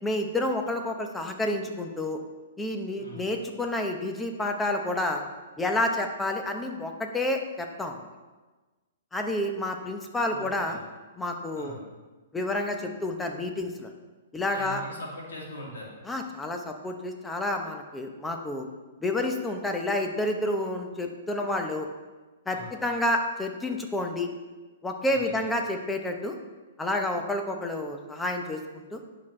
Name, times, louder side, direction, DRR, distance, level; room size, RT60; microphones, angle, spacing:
voice 1, 0.0-2.2 2.6-5.2 5.6-8.0 9.1-10.8 11.2-11.8 12.3-13.9 14.3-14.8 16.0-18.7 19.0-21.9 22.5-24.3 24.8-26.3 26.8-29.0, left 1 dB, 10° left, 4 dB, 0.8 m, -29 dB
voice 2, 3.0-3.3 10.3-10.8 11.5-11.8 14.5-15.9 22.5-22.7 25.1-25.4, equal, 85° left, -4 dB, 2.6 m, -41 dB
9.7 x 5.9 x 3.2 m, 1.2 s
hypercardioid pair, 150°, 0 cm